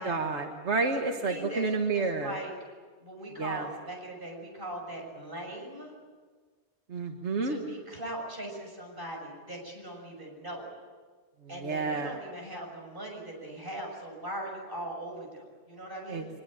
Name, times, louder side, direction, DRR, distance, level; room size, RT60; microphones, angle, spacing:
voice 1, 0.0-2.4 3.4-3.7 6.9-7.6 11.5-12.2 16.1-16.2, right 3 dB, 90° right, 3 dB, 1.8 m, -30 dB
voice 2, 0.8-1.7 1.9-2.5 3.0-5.9 7.4-10.7 11.5-16.3, right 1 dB, 50° right, 0 dB, 6.6 m, -40 dB
23.5 x 21.5 x 8.9 m, 1.5 s
omnidirectional pair, 1.1 m